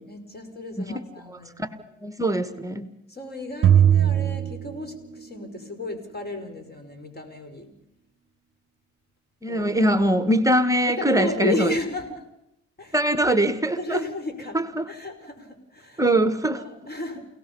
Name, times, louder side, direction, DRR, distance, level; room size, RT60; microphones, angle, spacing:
voice 1, 0.1-1.8 3.1-7.7 9.5-9.9 10.8-12.2 12.8-13.0 13.8-14.6 14.9-16.0 16.5-17.2, left 1 dB, 30° left, 5.2 m, -33 dB
voice 2, 1.3-1.7 2.0-2.9 9.4-11.7 12.9-14.0 14.5-14.9 16.0-16.6, right 1 dB, 10° right, 1.4 m, -22 dB
sound 1, 3.6-5.4, right 10 dB, 45° right, 0.8 m, -20 dB
29.5 x 18.0 x 5.4 m
cardioid pair, 90°, 30 cm